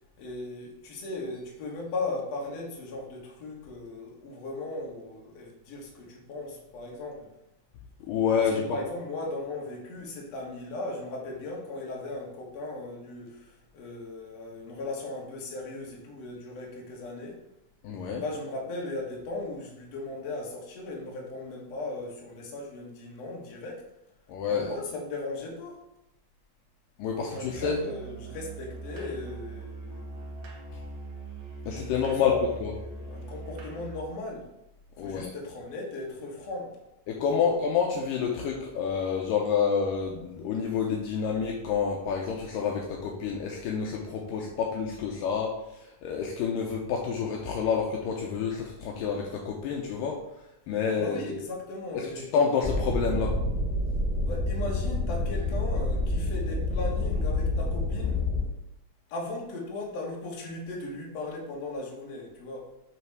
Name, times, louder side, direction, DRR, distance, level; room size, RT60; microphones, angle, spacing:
voice 1, 0.2-7.3 8.3-17.4 18.2-23.9 24.5-25.8 27.2-30.5 31.7-34.5 35.0-36.8 37.3-37.5 51.0-52.3 54.2-58.2 59.1-62.7, left 2 dB, 55° left, -2 dB, 1.9 m, -37 dB
voice 2, 8.1-8.5 17.8-18.2 24.3-24.7 27.0-27.2 27.4-27.8 31.7-32.3 32.6-32.7 35.0-35.3 37.1-50.2 50.7-51.4 51.9-52.1 52.3-53.3, left 6 dB, 80° left, 0 dB, 2.0 m, -28 dB
Musical instrument, 27.3-34.1, right 2 dB, 65° right, 2.6 m, -41 dB
sound 1, 52.6-58.4, left 2 dB, 20° right, 1.9 m, -28 dB
8.8 x 3.4 x 4.7 m, 0.88 s
omnidirectional pair, 4.6 m